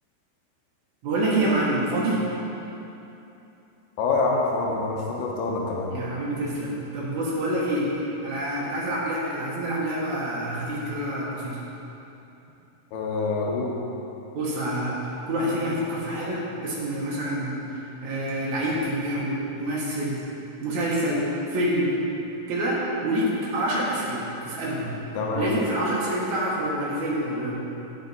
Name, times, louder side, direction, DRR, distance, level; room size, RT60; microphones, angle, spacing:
voice 1, 1.0-2.2 5.9-11.6 14.3-17.6 18.0-20.2 20.6-22.0 22.5-24.9 25.3-27.5, right 1 dB, 65° right, -5 dB, 1.9 m, -27 dB
voice 2, 4.0-5.9 12.9-13.7 25.2-25.5, left 3 dB, 90° left, -2 dB, 2.8 m, -26 dB
9.1 x 6.6 x 4.0 m, 2.9 s
omnidirectional pair, 4.6 m